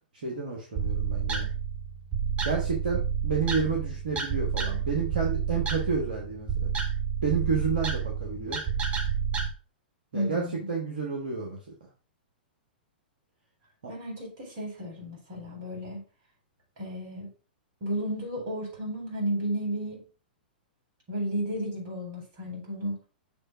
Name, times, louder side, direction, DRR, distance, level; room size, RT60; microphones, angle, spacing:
voice 1, 0.1-1.5 2.4-6.7 7.2-8.6 10.1-11.6 13.8-13.9, right 4 dB, 70° right, -1 dB, 1.5 m, -30 dB
sound 1, 0.7-9.5, right 7 dB, 20° right, 1.1 m, -30 dB
voice 2, 10.1-10.7 13.9-16.0 16.8-17.3 17.8-20.0 21.1-23.0, equal, 45° right, -1 dB, 3.9 m, -33 dB
7.0 x 3.3 x 4.9 m, 0.36 s
figure-of-eight pair, 105°, 5 cm